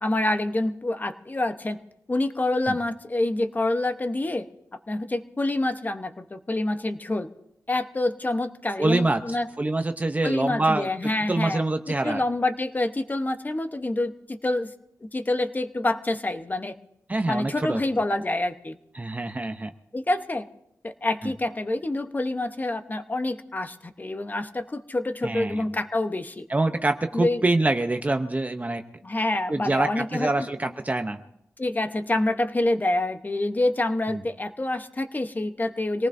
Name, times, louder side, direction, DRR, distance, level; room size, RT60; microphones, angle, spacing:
voice 1, 0.0-1.8 2.1-4.5 4.9-7.3 7.7-9.5 10.2-14.7 15.0-16.7 17.2-18.8 19.9-20.5 20.8-26.5 27.1-27.4 29.0-30.5 31.6-36.1, left 2 dB, 30° left, 8 dB, 0.9 m, -27 dB
voice 2, 8.8-10.9 11.3-12.2 17.1-17.8 18.9-19.7 21.2-21.3 25.2-25.7 26.5-28.8 29.5-31.2 34.1-34.2, right 2 dB, 25° right, 6 dB, 0.7 m, -25 dB
25.5 x 18.5 x 2.7 m, 0.79 s
wide cardioid pair, 90°, 6 cm